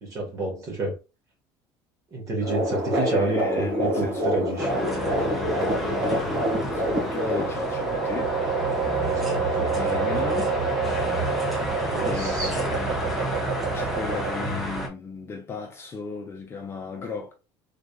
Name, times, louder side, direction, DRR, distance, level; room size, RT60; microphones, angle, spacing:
voice 1, 0.0-0.9 2.1-4.7 9.0-9.7 11.9-12.5, right 2 dB, 35° right, 1.8 m, -29 dB
sound 1, 2.4-7.5, equal, 50° right, 2.0 m, -26 dB
voice 2, 3.0-8.4 9.7-10.5 12.0-13.0 13.7-17.3, left 5 dB, 25° left, 0.8 m, -35 dB
sound 2, 4.6-14.9, equal, ahead, 0.9 m, -31 dB
sound 3, 6.6-14.7, right 4 dB, 80° right, 1.9 m, -28 dB
3.8 x 3.4 x 2.5 m
cardioid pair, 150°, 10 cm